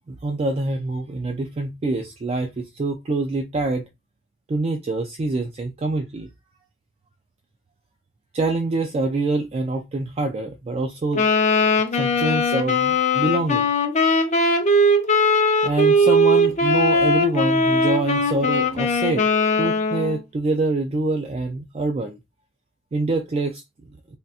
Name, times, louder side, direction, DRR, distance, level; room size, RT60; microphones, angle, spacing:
voice 1, 0.1-3.8 4.5-6.3 8.3-11.3 11.9-13.7 15.6-19.3 19.5-22.2 22.9-23.6, right 2 dB, 30° right, 0.3 m, -25 dB
Wind instrument woodwind instrument, 11.1-20.2, left 1 dB, 35° left, 0.5 m, -19 dB
3.5 x 2.7 x 2.4 m
head